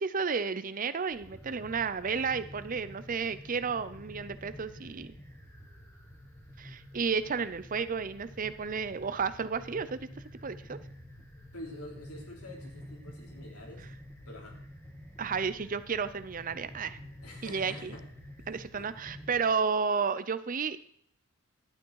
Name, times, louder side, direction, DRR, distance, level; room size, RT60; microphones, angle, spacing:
voice 1, 0.0-5.1 6.6-10.1 10.4-10.8 15.2-17.0 17.4-17.9 18.5-20.8, right 5 dB, 40° right, 14 dB, 0.5 m, -32 dB
sound 1, 1.1-19.4, equal, 15° left, 2.1 m, -49 dB
voice 2, 11.5-13.9 14.2-14.6 17.2-18.0 18.4-18.9, left 1 dB, 85° left, 0 dB, 3.3 m, -47 dB
12.0 x 8.8 x 4.7 m, 0.62 s
head